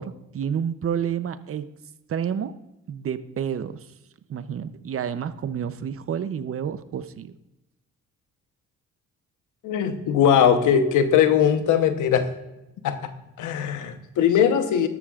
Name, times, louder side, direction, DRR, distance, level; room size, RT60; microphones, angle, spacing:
voice 1, 0.0-1.7 2.1-2.5 2.9-3.9 4.3-7.3, right 8 dB, 50° right, 12 dB, 0.7 m, -29 dB
voice 2, 9.6-12.3 12.8-13.1 13.4-14.9, left 8 dB, 80° left, 8 dB, 1.1 m, -20 dB
13.5 x 11.0 x 2.4 m, 0.96 s
cardioid pair, 90°, 30 cm